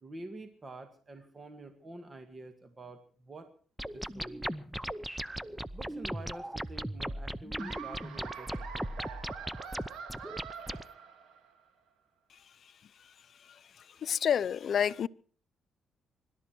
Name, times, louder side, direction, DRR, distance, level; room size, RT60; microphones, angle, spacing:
voice 1, 0.0-3.5 3.9-4.7 5.7-9.3, right 2 dB, 30° right, 2.0 m, -48 dB
sound 1, 3.8-10.8, right 1 dB, 5° right, 0.7 m, -38 dB
Laughter, 7.6-11.6, right 7 dB, 80° right, 2.9 m, -45 dB
voice 2, 14.0-15.1, left 8 dB, 60° left, 0.7 m, -28 dB
25.5 x 12.5 x 4.6 m
cardioid pair, 90°, 0 cm